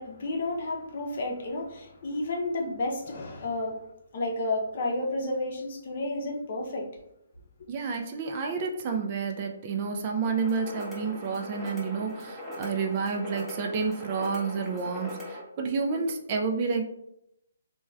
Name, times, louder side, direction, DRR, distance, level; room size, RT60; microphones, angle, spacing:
voice 1, 0.0-3.8 4.1-6.9, left 2 dB, 55° left, 1 dB, 0.6 m, -31 dB
voice 2, 7.7-16.8, right 5 dB, 35° right, 3 dB, 0.3 m, -30 dB
sound 1, 10.3-15.4, left 1 dB, ahead, 0.8 m, -40 dB
3.0 x 2.2 x 2.3 m, 0.79 s
hypercardioid pair, 145°, 0 cm